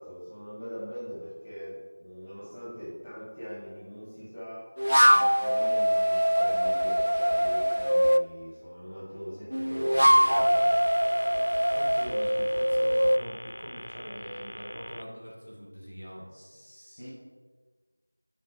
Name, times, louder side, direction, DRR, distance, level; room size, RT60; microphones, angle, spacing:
voice 1, 0.0-4.7 5.1-10.8 16.3-17.1, equal, 10° left, -9 dB, 1.4 m, -42 dB
sound 1, 4.8-8.3 9.5-13.2, equal, 85° right, 0.3 m, -23 dB
sound 2, 10.0-15.0, equal, 45° left, 0.5 m, -43 dB
voice 2, 11.7-16.3, equal, 40° right, -4 dB, 1.7 m, -42 dB
9.5 x 4.0 x 4.4 m, 1.4 s
figure-of-eight pair, 175°, 0 cm